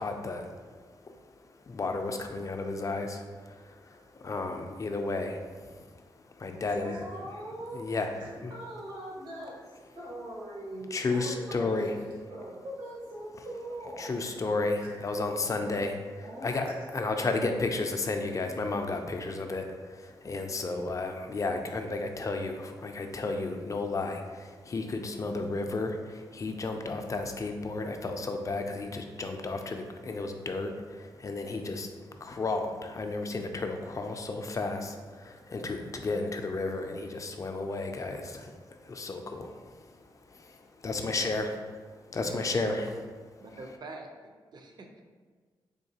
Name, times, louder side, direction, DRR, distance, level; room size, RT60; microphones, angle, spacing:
voice 1, 0.0-7.4 7.7-8.5 10.9-12.3 14.0-41.5 42.0-42.9, left 3 dB, 40° left, 5 dB, 0.4 m, -33 dB
voice 2, 6.6-7.8 8.2-9.5 9.9-14.4 15.6-15.7 16.2-16.9, right 1 dB, 85° right, -5 dB, 1.3 m, -42 dB
voice 3, 40.9-41.5 42.2-43.0 43.4-45.0, right 2 dB, 55° right, 3 dB, 0.5 m, -46 dB
3.9 x 2.8 x 2.7 m, 1.5 s
cardioid pair, 75°, 9 cm